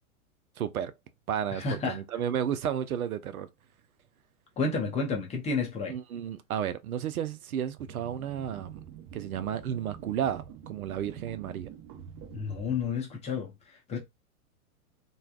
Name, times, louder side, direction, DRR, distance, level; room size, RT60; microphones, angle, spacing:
voice 1, 0.6-0.9 1.3-3.5 5.9-8.8 9.1-11.7, right 9 dB, 75° right, 0.6 m, -32 dB
voice 2, 1.5-2.0 4.6-6.0 12.3-14.0, left 4 dB, 15° left, 0.6 m, -31 dB
sound 1, 7.8-12.8, right 8 dB, 30° right, 0.9 m, -46 dB
3.2 x 2.2 x 2.3 m
figure-of-eight pair, 105°, 44 cm